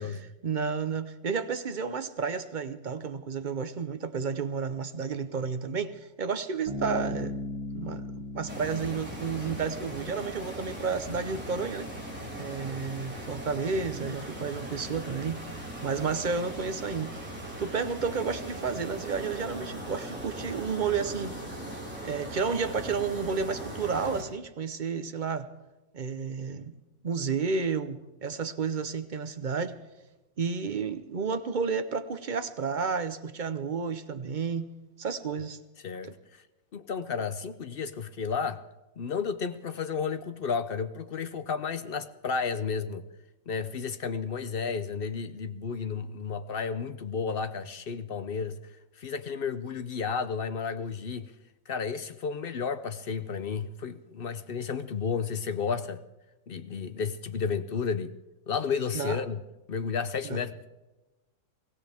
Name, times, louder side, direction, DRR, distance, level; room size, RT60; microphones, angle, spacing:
voice 1, 0.0-7.4 7.7-11.9 12.4-15.4 15.8-17.2 17.6-21.4 22.0-25.5 25.9-26.7 27.0-29.8 30.4-34.7 35.0-35.6 58.9-59.2 60.2-60.4, right 5 dB, 40° right, 0.7 m, -31 dB
Bass guitar, 6.7-10.3, left 2 dB, 75° left, 5.6 m, -37 dB
sound 1, 8.5-24.2, right 1 dB, 5° right, 3.9 m, -39 dB
voice 2, 35.8-36.4 36.7-38.6 39.0-43.0 43.5-51.3 51.7-56.0 56.5-58.1 58.5-59.4 59.7-60.7, left 6 dB, 55° left, 0.6 m, -32 dB
23.0 x 16.5 x 3.5 m
omnidirectional pair, 1.6 m